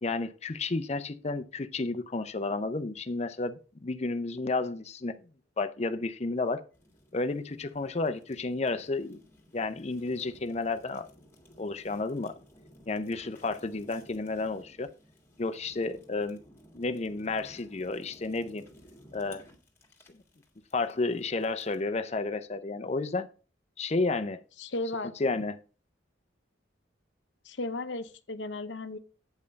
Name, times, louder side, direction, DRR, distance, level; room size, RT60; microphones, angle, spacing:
voice 1, 0.0-5.2 5.6-6.6 7.1-9.2 9.5-11.1 11.6-12.3 12.9-14.9 15.4-16.4 16.7-18.6 19.1-19.4 20.7-23.3 23.8-24.4 25.2-25.6, left 3 dB, 35° left, 0.6 m, -31 dB
Fire, 6.7-21.9, equal, 15° left, 1.7 m, -57 dB
voice 2, 24.6-25.1 27.4-29.0, left 2 dB, 70° left, 0.8 m, -35 dB
8.2 x 5.4 x 5.2 m
head